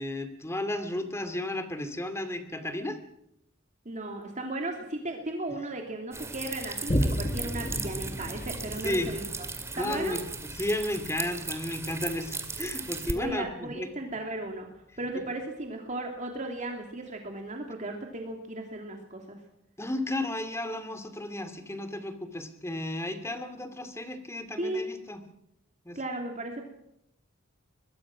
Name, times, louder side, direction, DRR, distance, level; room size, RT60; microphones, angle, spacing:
voice 1, 0.0-3.0 8.8-9.1 9.7-13.9 19.8-25.2 25.8-26.0, left 1 dB, 15° left, 9 dB, 2.4 m, -33 dB
voice 2, 3.8-9.2 9.8-10.2 13.1-19.4 24.6-24.9 25.9-26.6, right 2 dB, 40° right, 2 dB, 2.9 m, -36 dB
sound 1, 6.1-13.1, right 3 dB, 15° right, 2.1 m, -37 dB
Boom, 6.9-13.8 14.3-14.4, equal, 30° left, 2.0 m, -35 dB
23.5 x 21.5 x 6.1 m, 0.77 s
head